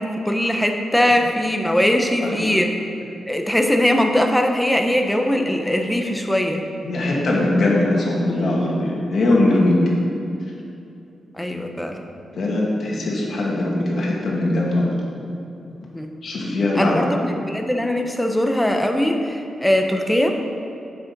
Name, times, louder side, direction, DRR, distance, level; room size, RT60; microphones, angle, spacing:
voice 1, 0.0-2.7 3.3-6.6 11.4-12.0 15.9-16.1 16.7-20.4, left 1 dB, 5° left, 4 dB, 0.9 m, -20 dB
voice 2, 6.8-9.8 12.4-14.9 16.2-17.1, left 2 dB, 65° left, -3 dB, 2.1 m, -20 dB
7.5 x 6.2 x 6.0 m, 2.8 s
cardioid pair, 85°, 0 cm